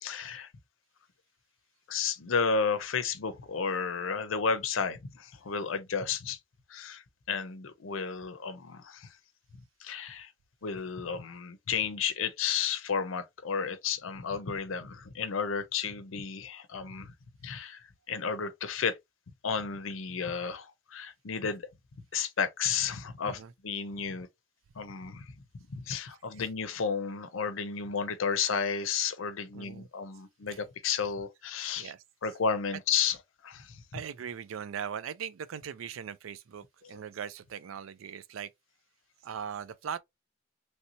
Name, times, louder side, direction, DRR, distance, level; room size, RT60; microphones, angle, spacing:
voice 1, 0.0-0.5 1.9-6.4 6.7-9.2 9.8-10.3 10.6-17.1 17.4-19.0 19.4-21.7 22.1-24.3 24.8-31.9 32.2-33.2 33.4-33.8, left 6 dB, 80° left, 0.6 m, -32 dB
voice 2, 29.5-29.9 30.5-30.6 31.8-32.0 33.9-38.5 39.2-40.0, right 8 dB, 80° right, 0.4 m, -40 dB
3.2 x 2.7 x 2.8 m
head